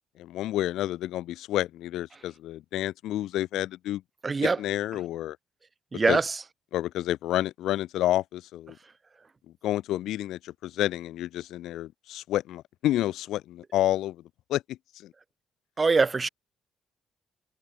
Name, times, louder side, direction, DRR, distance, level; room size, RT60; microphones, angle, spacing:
voice 1, 0.2-4.0 4.4-5.4 6.1-6.2 6.7-8.8 9.6-14.2 14.5-15.1, left 14 dB, 85° left, 0.6 m, -29 dB
voice 2, 4.2-4.6 5.9-6.4 15.8-16.3, right 4 dB, 30° right, 0.6 m, -23 dB
cardioid pair, 90°, 0 cm